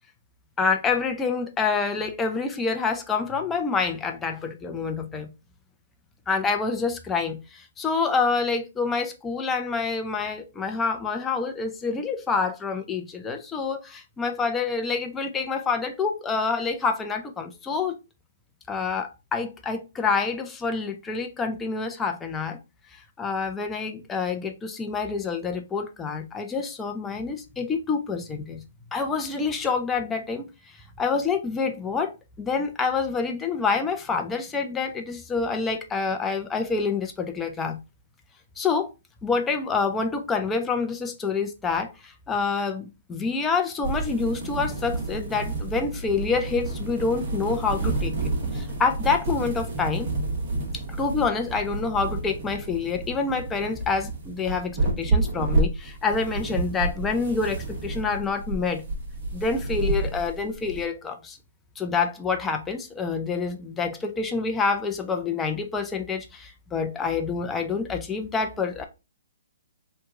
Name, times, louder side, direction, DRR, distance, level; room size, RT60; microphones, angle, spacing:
voice 1, 0.6-5.3 6.3-18.0 18.7-22.6 23.2-28.6 28.9-30.5 31.0-37.8 38.6-38.9 39.2-50.1 51.0-58.8 59.3-61.4 61.8-68.8, left 4 dB, 10° left, 0.5 m, -27 dB
sound 1, 43.8-60.8, right 3 dB, 40° right, 1.3 m, -30 dB
2.9 x 2.2 x 3.6 m
hypercardioid pair, 140°, 0 cm